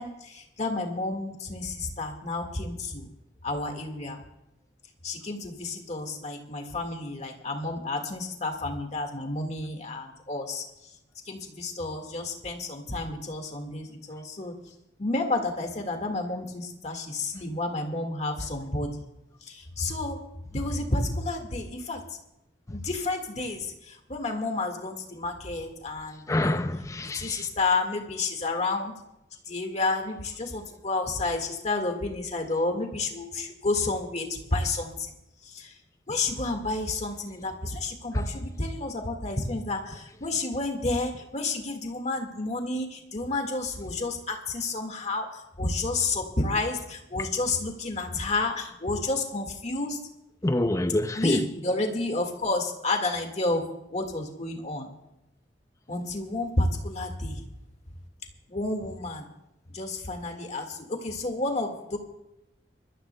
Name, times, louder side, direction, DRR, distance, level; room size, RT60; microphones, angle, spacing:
voice 1, 0.0-3.1 3.4-4.2 5.0-10.6 11.3-14.5 15.0-18.9 19.5-20.2 20.5-22.0 22.7-26.6 27.1-28.9 29.5-35.1 35.5-35.7 36.1-50.0 51.2-53.6 53.9-54.9 55.9-57.4 58.5-59.3 59.7-62.0, left 2 dB, 40° left, 1.7 m, -30 dB
voice 2, 26.3-27.5 38.1-38.3 47.2-47.3 50.4-51.5, left 1 dB, 15° left, 0.5 m, -27 dB
25.0 x 13.5 x 2.2 m
head